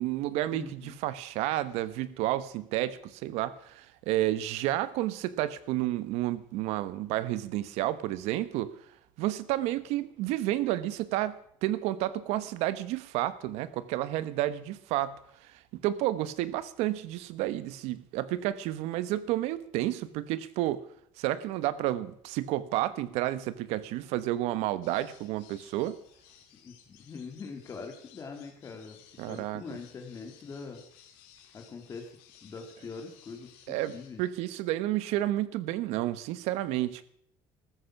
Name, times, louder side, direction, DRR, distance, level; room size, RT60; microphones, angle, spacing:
voice 1, 0.0-8.7 9.2-20.8 21.2-26.0 29.2-29.6 33.7-33.9 34.2-37.0, right 14 dB, 75° right, 15 dB, 1.2 m, -31 dB
voice 2, 0.5-1.0 26.6-29.0 29.3-30.8 31.5-32.1 32.4-34.2, left 5 dB, 30° left, 4 dB, 2.3 m, -43 dB
sound 1, 24.8-34.4, left 9 dB, 90° left, 2.9 m, -58 dB
14.0 x 13.5 x 6.0 m, 0.68 s
cardioid pair, 140°, 11 cm